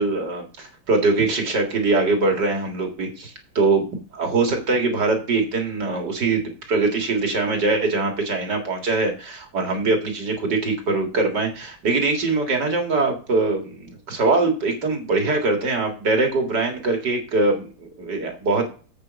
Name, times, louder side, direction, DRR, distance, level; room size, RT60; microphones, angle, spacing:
voice 1, 0.0-3.9 4.1-6.4 6.7-18.7, right 3 dB, 55° right, 3 dB, 2.5 m, -22 dB
8.0 x 6.8 x 5.1 m, 0.38 s
omnidirectional pair, 2.3 m